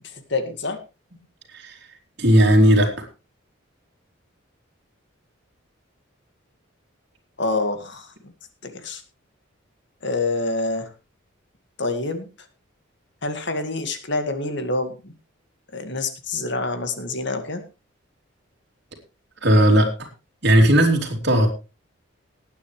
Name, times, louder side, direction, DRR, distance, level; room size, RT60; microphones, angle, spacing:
voice 1, 0.0-0.8 7.4-8.3 8.6-9.0 10.0-10.9 11.8-12.3 13.2-15.1 15.7-17.6, left 3 dB, 60° left, 8 dB, 2.0 m, -27 dB
voice 2, 2.2-2.9 19.4-19.9 20.4-21.5, right 1 dB, 55° right, 3 dB, 3.3 m, -16 dB
19.0 x 9.3 x 3.3 m, 0.29 s
head